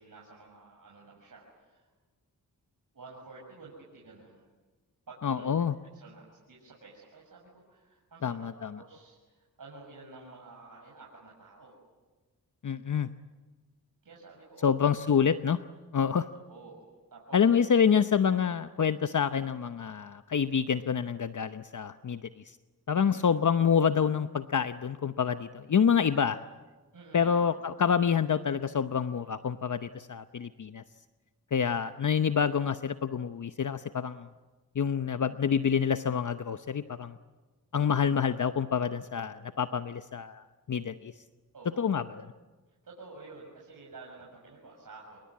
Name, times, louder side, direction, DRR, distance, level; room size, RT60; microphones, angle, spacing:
voice 1, 0.0-1.8 2.9-4.4 5.1-5.5 5.9-11.7 14.0-14.7 16.5-16.8 17.1-17.4 22.9-23.2 26.9-27.3 41.5-41.9 42.8-45.2, right 3 dB, 55° right, -3 dB, 6.8 m, -50 dB
voice 2, 5.2-5.8 8.2-8.8 12.6-13.1 14.6-15.6 15.9-16.3 17.3-22.6 22.9-26.4 27.1-30.8 31.5-34.3 34.7-37.2 37.7-41.1 41.8-42.0, left 7 dB, 50° left, 10 dB, 0.9 m, -27 dB
27.0 x 22.5 x 9.7 m, 1.3 s
cardioid pair, 60°, 39 cm